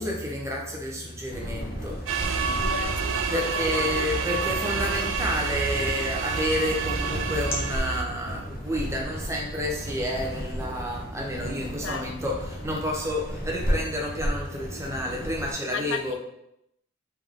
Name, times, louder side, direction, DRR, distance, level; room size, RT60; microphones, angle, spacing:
voice 1, 0.0-2.6 3.3-16.1, left 1 dB, 15° right, 0.7 m, -30 dB
sound 1, 1.3-15.5, equal, 45° left, 1.1 m, -34 dB
sound 2, 2.1-8.0, right 5 dB, 75° right, 0.4 m, -28 dB
voice 2, 2.5-4.2 11.8-12.4 15.7-16.1, left 7 dB, 65° left, 0.3 m, -36 dB
3.6 x 3.4 x 3.5 m
head